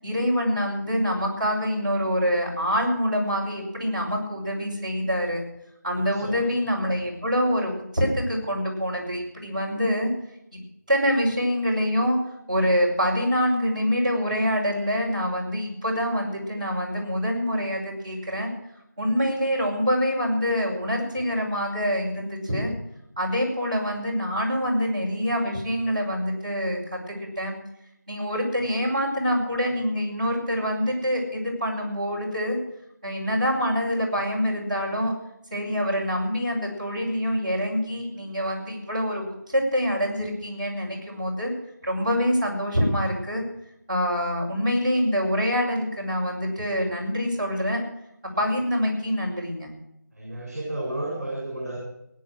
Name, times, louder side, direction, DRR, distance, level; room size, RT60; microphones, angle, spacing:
voice 1, 0.0-5.4 5.8-10.1 10.9-12.2 12.5-18.5 19.0-22.7 23.2-27.6 28.1-32.6 33.0-35.1 35.5-41.5 41.8-43.4 43.9-47.8 48.2-49.7, equal, 25° right, -7 dB, 5.5 m, -25 dB
voice 2, 6.0-6.4 50.1-51.8, right 1 dB, 50° right, -2 dB, 6.8 m, -32 dB
18.5 x 10.5 x 6.4 m, 0.82 s
figure-of-eight pair, 175°, 10 cm